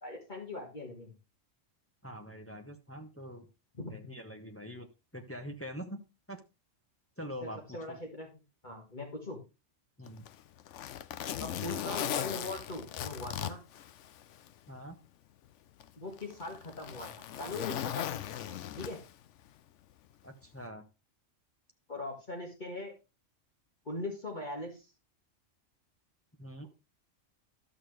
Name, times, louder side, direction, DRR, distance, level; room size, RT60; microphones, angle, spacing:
voice 1, 0.0-1.1 3.7-4.0 7.4-9.4 11.4-13.6 16.0-19.0 21.9-22.9 23.9-24.9, left 2 dB, 40° left, 0 dB, 1.8 m, -41 dB
voice 2, 2.0-3.5 3.9-4.9 5.1-6.0 6.3-6.4 7.2-7.6 7.9-8.0 10.0-10.2 14.7-15.0 20.2-20.8 26.4-26.7, equal, 10° left, 5 dB, 0.9 m, -44 dB
Zipper (clothing), 10.1-14.5 14.9-15.0 15.8-19.3 20.4-20.6, left 11 dB, 70° left, 0.9 m, -38 dB
12.5 x 6.5 x 3.1 m, 0.28 s
omnidirectional pair, 1.3 m